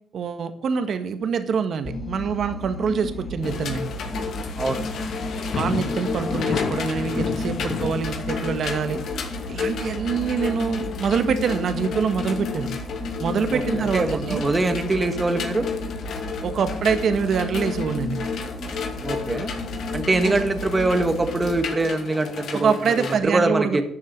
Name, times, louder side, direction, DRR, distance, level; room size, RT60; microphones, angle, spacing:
voice 1, 0.1-3.8 5.6-9.0 9.5-12.7 13.2-14.4 16.4-18.2 22.5-23.8, right 6 dB, 60° right, 9 dB, 1.7 m, -25 dB
sound 1, 1.8-21.6, left 2 dB, 10° left, 2.6 m, -33 dB
sound 2, 3.4-23.2, left 5 dB, 65° left, 2.7 m, -32 dB
voice 2, 13.5-15.7 19.0-19.5 19.9-22.7 23.0-23.8, right 2 dB, 25° right, 7 dB, 1.8 m, -23 dB
12.5 x 7.3 x 8.8 m, 0.73 s
cardioid pair, 90°, 0 cm